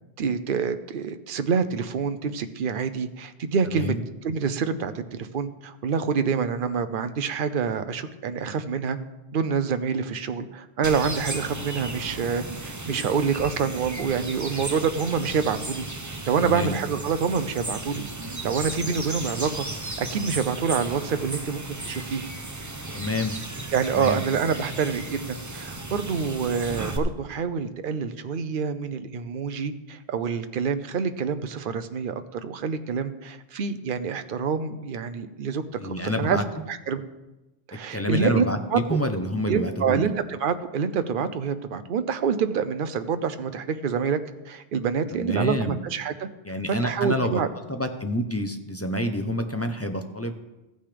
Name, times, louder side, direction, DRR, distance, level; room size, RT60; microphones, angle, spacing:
voice 1, 0.2-3.9 4.2-9.0 9.3-18.1 18.4-19.7 20.0-22.2 23.7-36.4 36.7-37.0 37.7-38.4 38.7-39.0 39.5-44.2 44.5-46.3 46.7-47.5, right 6 dB, 55° right, 10 dB, 0.8 m, -27 dB
voice 2, 3.6-4.0 16.4-16.8 22.9-23.4 23.9-24.2 35.8-36.4 37.7-40.1 45.1-45.8 46.4-47.3 47.7-50.3, left 1 dB, 15° left, 6 dB, 0.6 m, -28 dB
sound 1, 10.8-27.0, right 2 dB, 20° right, 0.8 m, -35 dB
15.0 x 9.1 x 3.4 m, 1.0 s
omnidirectional pair, 1.1 m